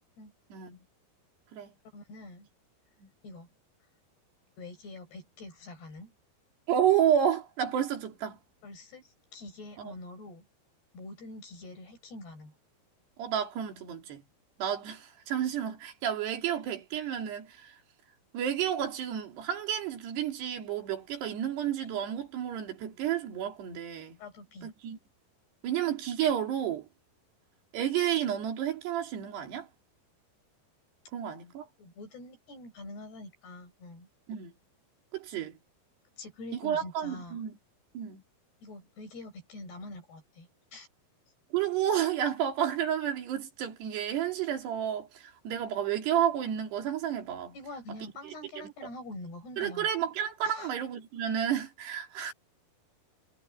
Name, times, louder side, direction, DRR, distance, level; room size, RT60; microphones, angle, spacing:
voice 1, 0.5-0.8 1.5-1.7 3.0-3.1 6.7-8.4 9.8-9.9 13.2-14.2 14.6-17.8 18.3-24.2 24.6-25.0 25.6-26.9 27.7-29.7 31.1-31.7 34.3-34.5 35.1-35.6 36.5-37.6 37.9-38.2 41.5-47.6 48.2-48.7 49.6-52.3, right 9 dB, 80° right, 5.0 m, -31 dB
voice 2, 1.9-2.5 3.2-3.5 4.6-6.1 8.6-10.5 10.9-12.5 24.2-24.7 31.8-34.1 36.2-37.4 38.6-40.9 47.5-49.9 50.4-50.7, left 2 dB, 75° left, 8.9 m, -45 dB
omnidirectional pair, 4.7 m